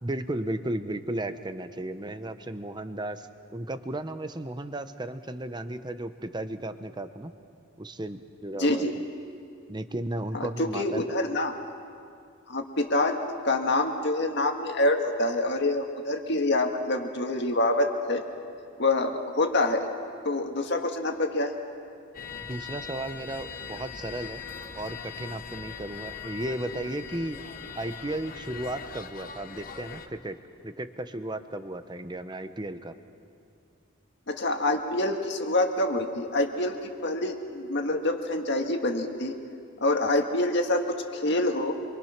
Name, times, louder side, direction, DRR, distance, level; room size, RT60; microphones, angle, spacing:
voice 1, 0.0-3.3 3.5-7.3 7.8-8.9 9.7-11.0 22.5-24.4 24.7-27.4 27.7-30.4 30.6-32.9, right 1 dB, 20° right, 10 dB, 0.9 m, -34 dB
voice 2, 8.6-8.9 10.3-11.5 12.5-13.2 13.4-18.2 18.8-19.9 20.2-21.5 34.3-39.3 39.8-41.7, left 2 dB, 60° left, 4 dB, 1.9 m, -26 dB
sound 1, 22.1-30.1, left 6 dB, 45° left, 1.2 m, -41 dB
27.0 x 24.0 x 6.0 m, 2.4 s
head